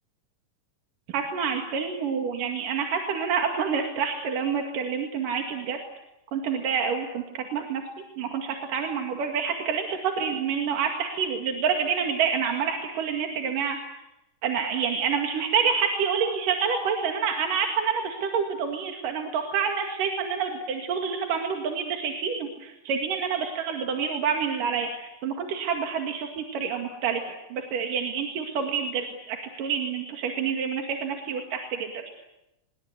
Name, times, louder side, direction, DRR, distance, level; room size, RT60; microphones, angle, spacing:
voice 1, 1.1-5.8 6.3-7.8 8.2-13.8 14.4-27.2 27.5-31.9, right 6 dB, 80° right, 3 dB, 3.8 m, -28 dB
25.5 x 22.5 x 8.2 m, 0.90 s
omnidirectional pair, 3.8 m